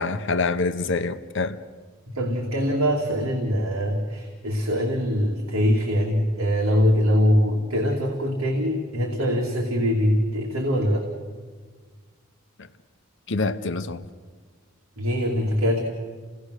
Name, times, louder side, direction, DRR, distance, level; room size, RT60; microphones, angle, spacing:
voice 1, 0.0-1.6 12.6-12.7 13.3-14.1, left 3 dB, 55° left, 0.8 m, -26 dB
voice 2, 2.1-11.1 15.0-15.8, equal, 70° right, 2.7 m, -23 dB
29.0 x 18.0 x 6.5 m
head